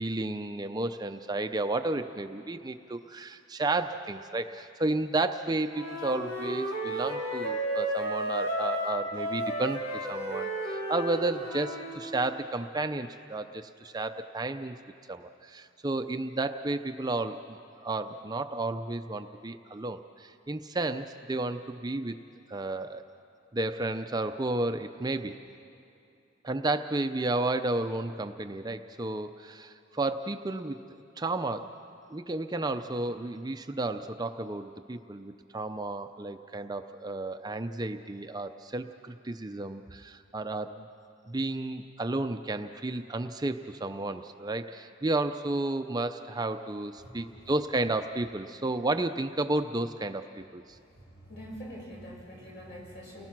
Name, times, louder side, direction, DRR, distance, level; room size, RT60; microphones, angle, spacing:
voice 1, 0.0-14.7 15.1-22.1 22.5-23.0 23.5-25.4 26.4-31.7 32.1-40.9 41.3-50.2 50.5-50.8, right 2 dB, 20° right, 8 dB, 0.5 m, -32 dB
Wind instrument woodwind instrument, 5.7-12.0, right 1 dB, 80° left, 5.0 m, -33 dB
voice 2, 47.0-47.4 51.1-53.3, equal, 60° left, -3 dB, 6.3 m, -44 dB
30.0 x 20.0 x 6.0 m, 2.5 s
head